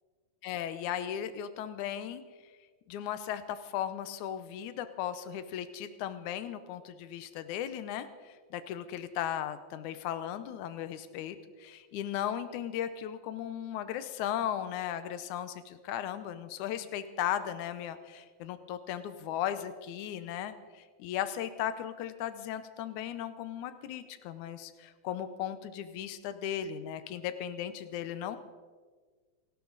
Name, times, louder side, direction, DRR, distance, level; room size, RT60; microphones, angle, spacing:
voice 1, 0.4-2.2 2.9-28.4, left 10 dB, 85° left, 11 dB, 2.3 m, -36 dB
29.0 x 12.0 x 4.0 m, 1.5 s
omnidirectional pair, 3.4 m